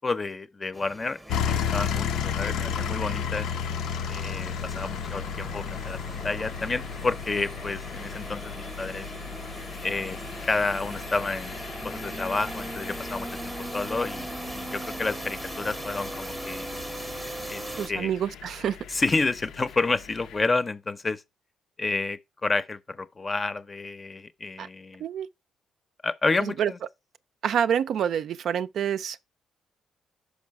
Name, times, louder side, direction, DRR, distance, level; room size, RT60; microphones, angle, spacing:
voice 1, 0.0-3.5 4.1-9.1 9.8-11.5 11.8-16.7 17.5-17.6 17.9-18.1 18.9-21.2 21.8-25.0 26.0-26.8, left 3 dB, 30° left, 0.5 m, -30 dB
sound 1, 0.7-17.9, right 1 dB, 10° right, 0.7 m, -39 dB
sound 2, 1.3-20.4, left 7 dB, 85° left, 0.5 m, -34 dB
voice 2, 17.8-18.8 24.6-24.7 25.0-25.3 26.4-26.7 27.4-29.2, right 8 dB, 65° right, 0.3 m, -27 dB
5.4 x 5.1 x 4.6 m
cardioid pair, 90°, 0 cm